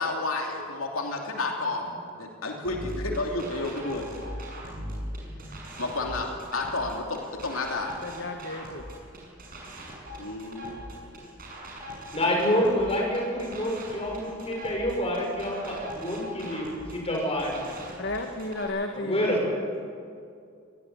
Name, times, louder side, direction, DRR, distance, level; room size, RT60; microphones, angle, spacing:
voice 1, 0.0-4.1 5.8-8.0 10.2-10.8, left 2 dB, 80° left, 1 dB, 2.9 m, -31 dB
sound 1, 2.6-18.6, equal, 45° right, 6.4 m, -40 dB
voice 2, 8.0-8.8 18.0-19.2, left 2 dB, 55° left, 5 dB, 1.4 m, -33 dB
voice 3, 12.1-17.5 18.9-19.4, equal, 30° left, -1 dB, 6.3 m, -27 dB
21.5 x 17.5 x 9.4 m, 2.3 s
head